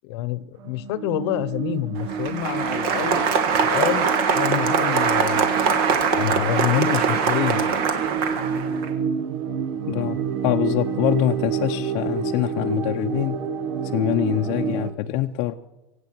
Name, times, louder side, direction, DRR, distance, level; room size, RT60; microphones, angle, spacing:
voice 1, 0.0-3.3 3.6-7.8, left 13 dB, 70° left, 17 dB, 0.9 m, -27 dB
sound 1, 0.6-14.9, right 6 dB, 80° right, 1.4 m, -29 dB
Applause, 2.0-8.9, right 6 dB, 60° right, 1.8 m, -22 dB
voice 2, 9.9-13.4 13.9-15.5, left 14 dB, 50° left, 4 dB, 0.6 m, -24 dB
24.0 x 8.3 x 6.0 m, 1.1 s
supercardioid pair, 155°, 14 cm